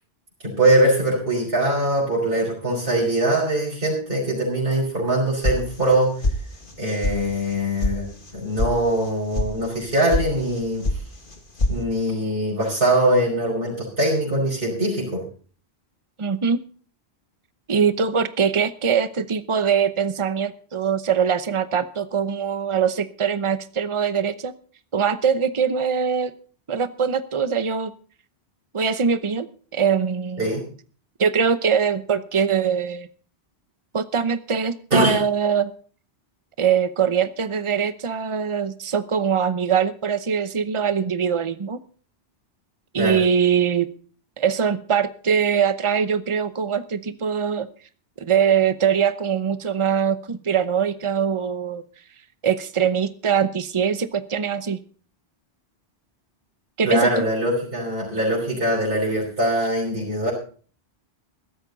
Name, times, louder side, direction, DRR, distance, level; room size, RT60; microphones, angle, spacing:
voice 1, 0.4-6.1 6.8-8.1 8.3-10.8 11.7-15.2 30.4-30.6 34.9-35.2 43.0-43.2 56.8-60.3, right 1 dB, 55° right, -5 dB, 5.5 m, -22 dB
sound 1, 5.4-6.0 6.2-6.8 7.0-7.1 7.5-7.9 8.2-8.7 9.0-9.5 9.8-10.3 10.5-11.0 11.3-11.8, left 2 dB, 50° left, 2.1 m, -23 dB
voice 2, 16.2-16.6 17.7-24.5 24.9-26.3 26.7-27.9 28.7-29.5 29.7-30.5 31.2-33.1 33.9-35.7 36.6-41.8 42.9-43.9 44.4-47.7 48.2-51.8 52.4-54.8 56.8-57.2, right 7 dB, 30° right, 12 dB, 0.9 m, -22 dB
16.0 x 13.5 x 4.0 m, 0.43 s
omnidirectional pair, 1.1 m